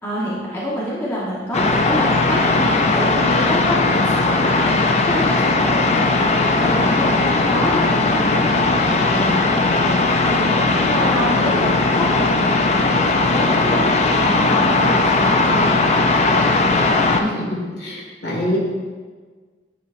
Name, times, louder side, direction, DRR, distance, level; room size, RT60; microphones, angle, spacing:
voice 1, 0.0-13.8 14.1-15.8, equal, 10° left, -8 dB, 1.2 m, -26 dB
sound 1, 1.5-17.2, left 3 dB, 35° left, 0.4 m, -18 dB
voice 2, 17.2-18.6, left 1 dB, 55° left, -4 dB, 1.9 m, -25 dB
10.0 x 5.5 x 2.5 m, 1.5 s
head